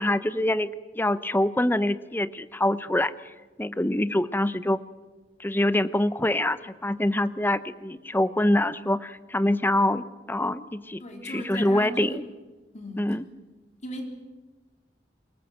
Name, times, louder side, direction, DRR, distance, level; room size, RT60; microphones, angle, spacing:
voice 1, 0.0-3.1 3.6-4.8 5.4-12.2 13.0-13.2, left 1 dB, 10° left, 14 dB, 0.8 m, -25 dB
voice 2, 11.0-12.2 12.7-13.1 13.8-14.2, left 1 dB, 45° left, 3 dB, 3.9 m, -37 dB
24.5 x 21.5 x 7.9 m, 1.2 s
head